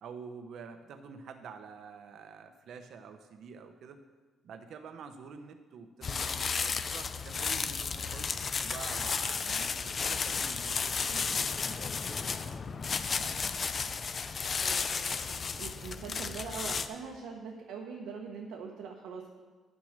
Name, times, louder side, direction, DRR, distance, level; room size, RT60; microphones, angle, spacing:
voice 1, 0.0-4.0 4.4-11.9, right 5 dB, 70° right, 7 dB, 0.9 m, -48 dB
sound 1, 6.0-16.9, left 5 dB, 45° left, 0.6 m, -33 dB
voice 2, 13.0-13.5 14.6-19.3, right 5 dB, 90° right, 0 dB, 1.2 m, -43 dB
10.0 x 6.3 x 6.6 m, 1.3 s
cardioid pair, 90°, 0 cm